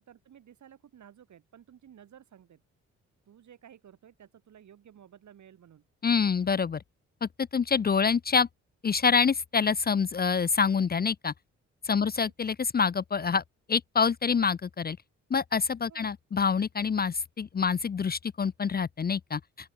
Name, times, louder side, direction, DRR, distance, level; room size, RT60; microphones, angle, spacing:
voice 1, 0.0-2.6 3.3-5.9 12.0-12.3 15.9-16.1, right 9 dB, 65° right, 4.1 m, -54 dB
voice 2, 6.0-6.8 7.2-8.5 8.8-11.3 11.8-13.4 13.7-15.0 15.3-19.4, left 5 dB, 30° left, 0.6 m, -26 dB
open air
supercardioid pair, 65°, 31 cm